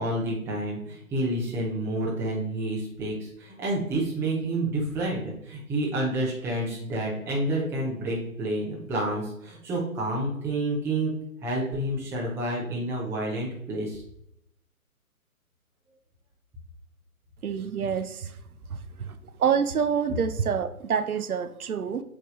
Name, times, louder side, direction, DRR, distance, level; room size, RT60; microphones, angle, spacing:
voice 1, 0.0-11.1 11.4-14.0, right 1 dB, 5° right, -4 dB, 0.8 m, -29 dB
voice 2, 17.4-18.4 18.7-22.0, right 7 dB, 75° right, 11 dB, 0.7 m, -27 dB
7.7 x 3.4 x 3.9 m, 0.78 s
figure-of-eight pair, 135°, 44 cm